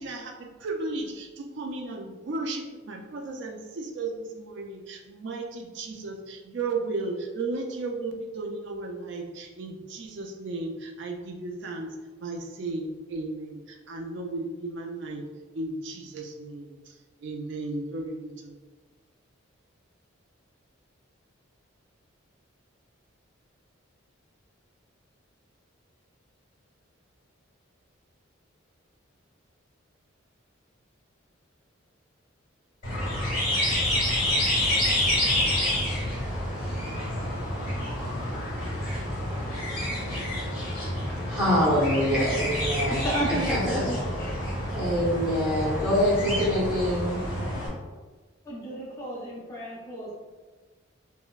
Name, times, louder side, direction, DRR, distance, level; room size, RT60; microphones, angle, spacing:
voice 1, 0.0-15.2 15.5-18.6, right 3 dB, 60° right, 3 dB, 0.4 m, -35 dB
sound 1, 32.8-47.7, left 1 dB, 40° left, 1.3 m, -28 dB
voice 2, 41.3-43.0 43.5-43.8 44.7-47.2, equal, 5° right, -9 dB, 1.1 m, -25 dB
voice 3, 42.9-44.4 48.5-50.1, right 1 dB, 15° left, -7 dB, 0.6 m, -33 dB
5.2 x 2.1 x 2.3 m, 1.3 s
head